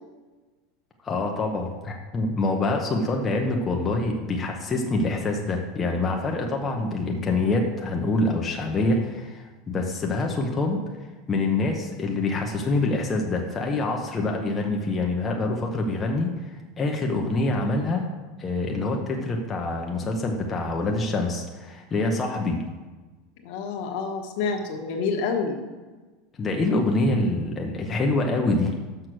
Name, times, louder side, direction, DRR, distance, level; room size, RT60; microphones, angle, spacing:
voice 1, 1.0-10.8 11.3-18.0 18.4-22.6 26.4-28.7, left 2 dB, 20° left, 1 dB, 0.8 m, -25 dB
voice 2, 23.4-25.6, left 5 dB, 60° left, 4 dB, 1.2 m, -28 dB
6.5 x 6.1 x 6.2 m, 1.3 s
supercardioid pair, 150°, 0 cm